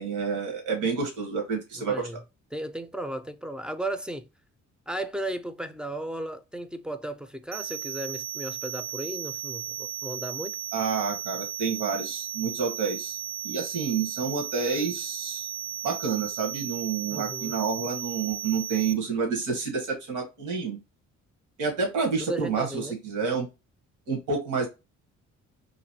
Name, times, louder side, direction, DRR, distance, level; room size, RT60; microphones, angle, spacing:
voice 1, 0.0-2.1 10.7-13.2 13.4-15.5 15.8-20.8 21.6-23.5 24.1-24.7, right 5 dB, 90° right, 1.2 m, -29 dB
voice 2, 1.8-2.2 2.5-4.3 4.9-10.6 17.1-17.5 22.2-23.0, right 1 dB, 5° right, 0.4 m, -35 dB
sound 1, 7.5-18.9, right 11 dB, 65° right, 0.4 m, -35 dB
3.0 x 2.6 x 2.7 m
cardioid pair, 90°, 30 cm